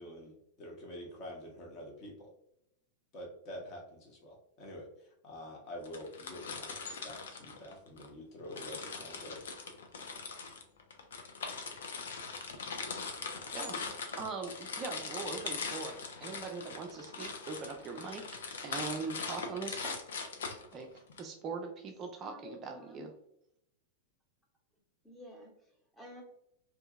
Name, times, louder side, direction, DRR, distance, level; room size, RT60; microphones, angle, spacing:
voice 1, 0.0-2.3 3.1-4.9 5.2-9.4, equal, 35° left, -1 dB, 0.8 m, -47 dB
sound 1, 5.8-8.1 8.5-21.2, left 5 dB, 65° left, 0.4 m, -41 dB
voice 2, 13.5-13.9 14.2-15.9 16.2-18.2 18.6-20.0 20.7-20.9 21.2-23.1, right 4 dB, 30° right, 3 dB, 0.3 m, -41 dB
voice 3, 22.2-23.1 25.0-25.5 26.0-26.2, left 1 dB, 5° left, -1 dB, 0.9 m, -50 dB
2.7 x 2.5 x 2.3 m, 0.76 s
figure-of-eight pair, 90°, 0 cm